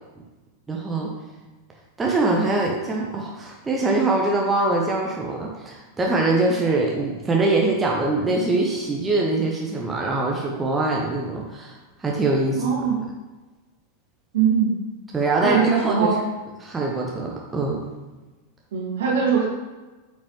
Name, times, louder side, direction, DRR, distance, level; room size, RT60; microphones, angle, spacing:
voice 1, 0.7-1.1 2.0-12.7 15.1-16.2 16.6-17.8, right 2 dB, 15° right, -1 dB, 0.9 m, -23 dB
voice 2, 12.5-12.9 14.3-14.7 15.4-16.2 18.7-19.5, right 6 dB, 60° right, -2 dB, 1.9 m, -21 dB
8.4 x 5.3 x 3.1 m, 1.2 s
figure-of-eight pair, 90°, 0 cm